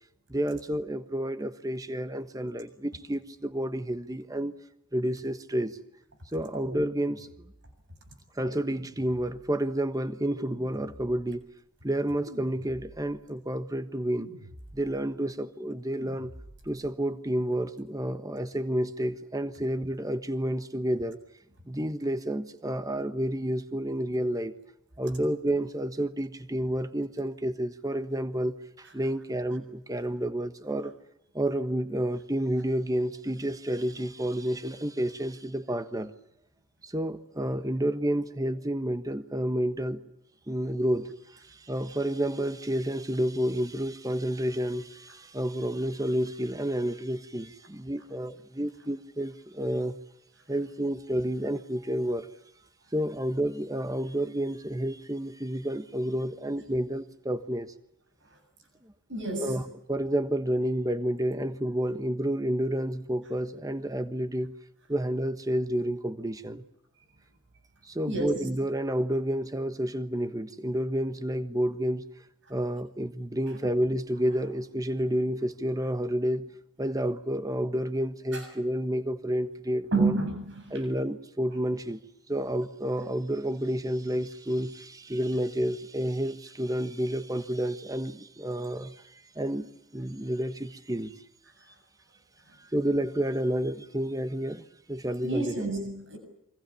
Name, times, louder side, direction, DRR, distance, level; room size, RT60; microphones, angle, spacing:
voice 1, 0.3-4.5 4.9-5.8 6.3-7.3 8.4-11.5 11.8-14.3 14.7-16.3 16.6-21.2 21.7-24.5 25.0-30.9 31.3-36.1 36.8-40.0 40.5-50.0 50.5-52.3 52.9-57.7 59.4-59.6 59.9-64.5 64.9-66.6 67.8-72.0 72.5-76.4 76.8-80.2 80.7-82.0 82.3-91.2 92.6-95.6, right 1 dB, 15° right, 1.3 m, -30 dB
sound 1, 6.5-7.8 8.5-9.6 10.4-11.5 12.3-13.3 14.2-15.1 16.0-16.9, right 1 dB, 85° right, 4.7 m, -47 dB
voice 2, 59.1-59.6 68.1-68.4 78.3-78.5 79.9-80.8 95.2-96.2, right 3 dB, 55° right, 7.3 m, -29 dB
28.0 x 25.5 x 7.1 m
head